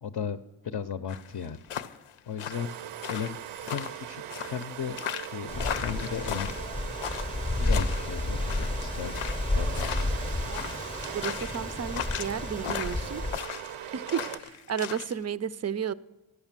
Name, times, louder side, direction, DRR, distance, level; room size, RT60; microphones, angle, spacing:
voice 1, 0.0-1.6 2.3-2.8 3.1-5.0 5.3-6.5 7.0-7.2 7.6-9.2 9.5-10.1, left 7 dB, 50° left, 8 dB, 0.6 m, -36 dB
sound 1, 1.1-15.1, left 9 dB, 90° left, 0.7 m, -37 dB
sound 2, 2.5-14.4, right 11 dB, 85° right, 0.7 m, -40 dB
Wind, 5.5-13.4, left 2 dB, 10° left, 0.6 m, -31 dB
voice 2, 11.1-13.2 13.9-15.9, right 8 dB, 35° right, 18 dB, 0.4 m, -33 dB
13.5 x 9.8 x 7.4 m, 1.0 s
wide cardioid pair, 120°, 49 cm